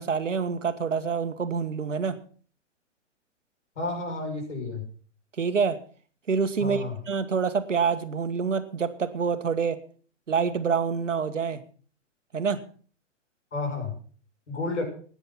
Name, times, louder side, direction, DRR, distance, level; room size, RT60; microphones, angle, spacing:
voice 1, 0.0-2.2 5.4-5.8 6.3-9.8 10.3-11.6 12.3-12.6, right 6 dB, 80° right, 11 dB, 1.4 m, -27 dB
voice 2, 3.8-4.8 6.6-6.9 13.5-13.9 14.5-14.8, left 3 dB, 70° left, 2 dB, 6.5 m, -31 dB
14.5 x 9.9 x 5.9 m, 0.43 s
figure-of-eight pair, 115°, 37 cm